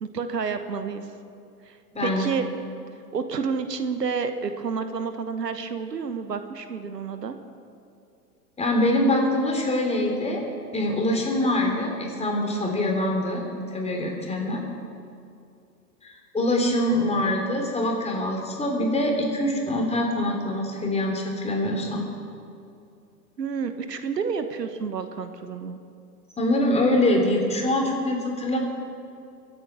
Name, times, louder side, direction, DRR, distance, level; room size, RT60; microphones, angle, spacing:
voice 1, 0.0-1.1 1.6-2.4 3.1-7.4 23.4-25.8, right 5 dB, 85° right, 9 dB, 1.2 m, -30 dB
voice 2, 1.9-2.3 8.6-13.4 13.7-14.6 16.0-22.1 26.4-28.6, left 1 dB, 15° left, 1 dB, 3.4 m, -24 dB
24.0 x 8.9 x 6.2 m, 2.6 s
hypercardioid pair, 100°, 48 cm